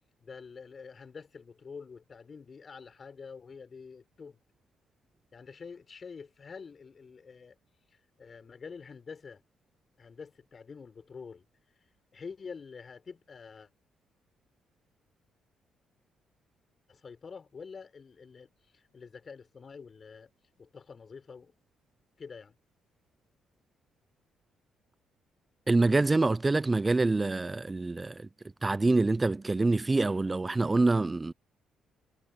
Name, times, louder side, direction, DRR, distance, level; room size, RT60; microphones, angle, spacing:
voice 1, 0.2-4.4 5.3-7.6 8.2-9.4 10.0-11.4 12.1-13.7 16.9-20.3 20.6-21.5 22.2-22.6, left 5 dB, 40° left, 5.9 m, -47 dB
voice 2, 25.7-28.3 28.6-31.3, right 3 dB, 20° right, 0.6 m, -26 dB
cardioid pair, 80°, 0 cm